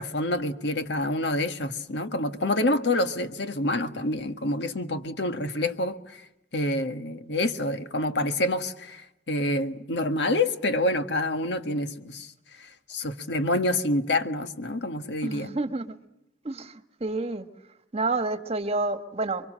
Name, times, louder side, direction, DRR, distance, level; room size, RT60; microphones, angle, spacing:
voice 1, 0.0-6.2 6.5-12.3 12.6-15.5, left 1 dB, 70° left, 1.7 m, -27 dB
voice 2, 15.2-16.0 16.4-17.4 17.9-19.5, right 2 dB, 35° right, 1.5 m, -29 dB
29.5 x 24.0 x 7.6 m
head